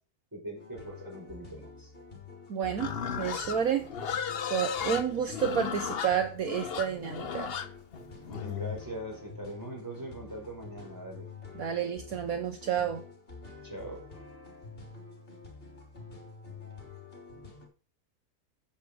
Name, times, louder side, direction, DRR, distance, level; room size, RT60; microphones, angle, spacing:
voice 1, 0.3-1.9 4.9-5.0 8.2-11.3 13.6-14.0, right 1 dB, 10° right, 0 dB, 4.7 m, -41 dB
sound 1, 0.5-17.7, left 3 dB, 35° left, 3.5 m, -48 dB
voice 2, 2.5-2.9 3.2-3.9 4.5-7.5 11.5-13.0, right 8 dB, 65° right, 7 dB, 1.4 m, -30 dB
Livestock farm animals working animals, 2.8-8.8, left 7 dB, 50° left, 0.8 m, -35 dB
10.0 x 8.4 x 5.1 m, 0.35 s
omnidirectional pair, 1.7 m